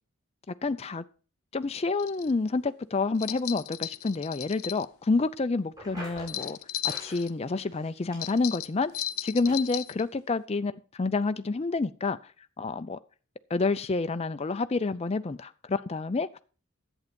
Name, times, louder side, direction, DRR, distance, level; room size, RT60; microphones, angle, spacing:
voice 1, 0.5-1.0 1.5-6.6 7.0-8.9 9.2-12.3 12.6-13.0 13.5-16.3, left 3 dB, 30° left, 0.4 m, -28 dB
sound 1, 2.0-2.3 3.2-4.8 6.2-7.3 8.2-10.0, left 13 dB, 80° left, 0.5 m, -35 dB
sound 2, 5.7-6.5 6.9-7.3 7.6-8.5 8.9-9.0 9.4-9.5, equal, 20° right, 6.3 m, -45 dB
11.0 x 8.1 x 5.2 m
head